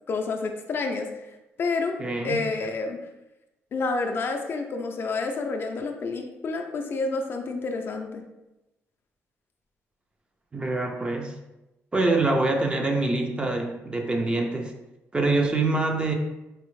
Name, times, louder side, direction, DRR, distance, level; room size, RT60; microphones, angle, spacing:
voice 1, 0.1-1.1 1.6-2.0 2.2-3.0 3.7-8.2, left 3 dB, 45° left, 4 dB, 0.4 m, -29 dB
voice 2, 2.0-2.4 10.5-11.3 11.9-14.7 15.1-16.1, right 2 dB, 20° right, 3 dB, 0.4 m, -25 dB
4.2 x 2.0 x 3.0 m, 0.96 s
cardioid pair, 125°, 5 cm